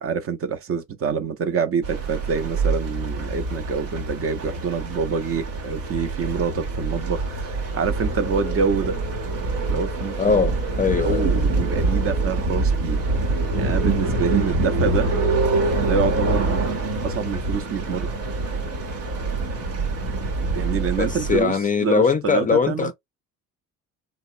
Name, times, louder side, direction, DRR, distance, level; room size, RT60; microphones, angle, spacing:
voice 1, 0.0-9.0 9.6-10.4 11.0-13.0 13.6-15.1 15.8-16.7 17.0-18.1 20.5-22.9, right 6 dB, 40° right, 0.5 m, -26 dB
sound 1, 1.8-21.4, right 3 dB, 85° right, 1.0 m, -25 dB
voice 2, 10.2-11.3 21.0-22.9, left 5 dB, 25° left, 0.4 m, -21 dB
2.9 x 2.0 x 2.5 m
hypercardioid pair, 65°, 37 cm